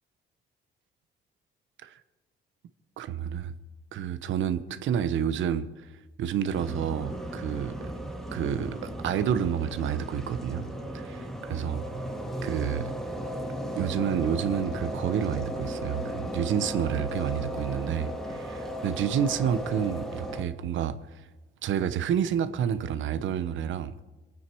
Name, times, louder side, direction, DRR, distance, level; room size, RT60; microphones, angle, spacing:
voice 1, 3.0-3.5 3.9-5.6 6.2-7.9 8.3-10.7 10.9-11.9 12.4-12.9 13.8-21.2 21.6-23.9, right 9 dB, 75° right, 0.9 m, -29 dB
sound 1, 6.5-20.4, equal, ahead, 2.4 m, -35 dB
22.5 x 9.2 x 4.6 m
cardioid pair, 90°, 20 cm